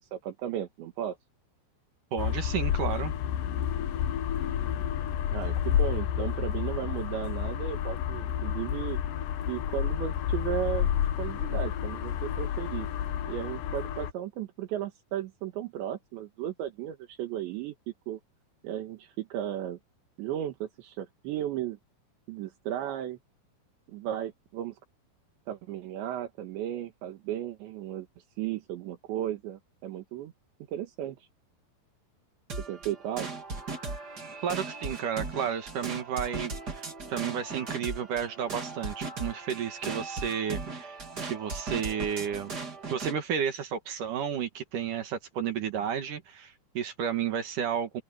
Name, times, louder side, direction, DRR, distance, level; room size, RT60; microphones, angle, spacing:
voice 1, 0.1-1.2 5.3-9.0 9.5-10.9 11.2-12.9 13.3-17.8 18.1-18.2 18.6-19.8 20.2-21.8 22.3-23.2 23.9-24.8 25.5-28.1 28.4-30.3 30.7-31.2 32.7-33.3, right 11 dB, 80° right, 3.9 m, -35 dB
voice 2, 2.1-3.1 34.4-41.0 41.2-42.5 42.9-48.0, right 8 dB, 55° right, 2.7 m, -32 dB
sound 1, 2.2-14.1, left 10 dB, 80° left, 1.9 m, -30 dB
sound 2, 32.5-43.2, right 3 dB, 25° right, 3.0 m, -38 dB
open air
omnidirectional pair, 5.1 m